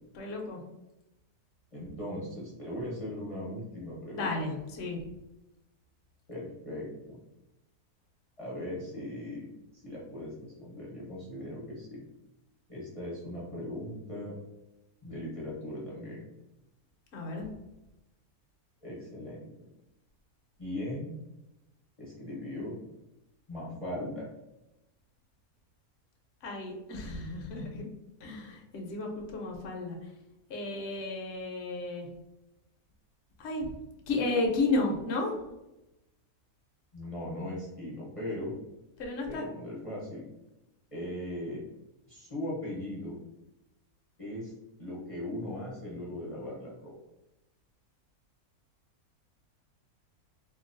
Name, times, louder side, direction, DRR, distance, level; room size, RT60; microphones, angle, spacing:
voice 1, 0.1-0.6 4.1-5.0 17.1-17.4 26.4-27.8 28.2-30.0 30.5-32.1 33.4-33.7 34.1-35.3 39.0-39.5, left 2 dB, 60° left, 0 dB, 0.8 m, -32 dB
voice 2, 1.7-4.3 6.3-7.2 8.4-9.5 9.8-12.0 12.7-14.4 15.0-16.3 18.8-19.5 20.6-21.1 22.0-22.8 23.5-24.3 36.9-38.6 39.3-40.2 40.9-41.6 42.1-43.2 44.2-44.5 44.8-46.9, left 1 dB, 30° left, -7 dB, 0.7 m, -39 dB
3.7 x 2.3 x 2.5 m, 0.94 s
omnidirectional pair, 1.5 m